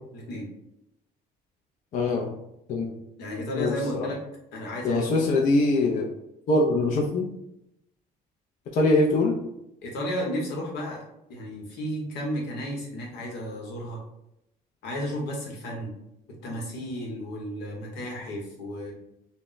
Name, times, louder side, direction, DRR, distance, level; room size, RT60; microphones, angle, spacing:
voice 1, 0.1-0.5 3.2-4.2 4.5-5.2 9.8-14.0 14.8-15.9 16.4-18.9, equal, 80° left, -1 dB, 0.9 m, -33 dB
voice 2, 1.9-2.3 2.7-2.9 3.5-4.1 4.8-6.1 6.5-7.3 8.7-9.4, left 2 dB, 50° left, -1 dB, 0.4 m, -23 dB
2.1 x 2.0 x 3.8 m, 0.83 s
cardioid pair, 110°, 17 cm